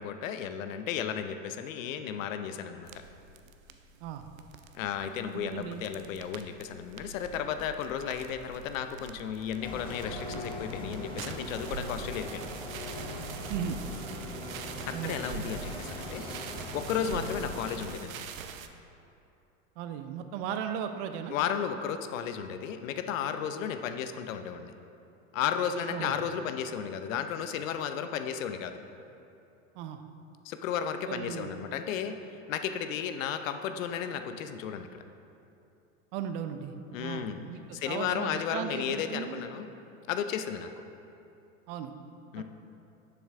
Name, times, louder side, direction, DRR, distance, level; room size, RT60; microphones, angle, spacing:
voice 1, 0.0-2.9 4.7-12.5 14.9-16.2 16.7-18.3 21.3-24.7 25.3-28.8 30.4-32.2 32.5-35.0 36.9-37.4 37.7-39.7 40.1-40.8 42.3-42.4, left 8 dB, 75° left, 8 dB, 0.8 m, -34 dB
sound 1, 2.8-18.7, right 5 dB, 85° right, 0.7 m, -44 dB
voice 2, 5.3-5.8 13.5-13.8 14.9-15.2 17.2-17.3 19.8-21.4 25.9-26.2 29.7-30.0 31.1-31.5 36.1-39.4 41.7-41.9 42.4-42.5, right 8 dB, 60° right, 8 dB, 0.8 m, -37 dB
sound 2, 9.6-17.7, left 1 dB, 10° left, 1.6 m, -40 dB
10.5 x 7.0 x 3.5 m, 2.7 s
hypercardioid pair, 105°, 40 cm